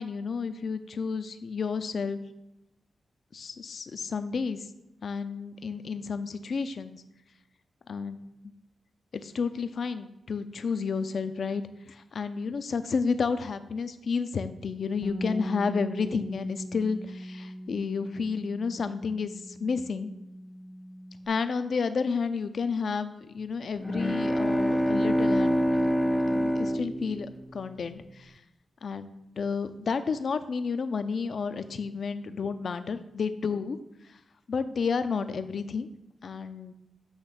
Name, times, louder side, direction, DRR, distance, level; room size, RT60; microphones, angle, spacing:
voice 1, 0.0-2.2 3.3-4.7 5.0-7.0 7.9-8.2 9.1-20.1 21.3-25.8 26.3-28.4 28.8-33.8 34.5-35.9 36.2-36.7, left 5 dB, 65° left, 11 dB, 0.5 m, -31 dB
Bass guitar, 15.0-21.3, equal, 45° right, 1.8 m, -40 dB
sound 1, 23.8-27.8, equal, 10° left, 0.5 m, -26 dB
8.0 x 3.1 x 5.8 m, 0.90 s
cardioid pair, 50°, 0 cm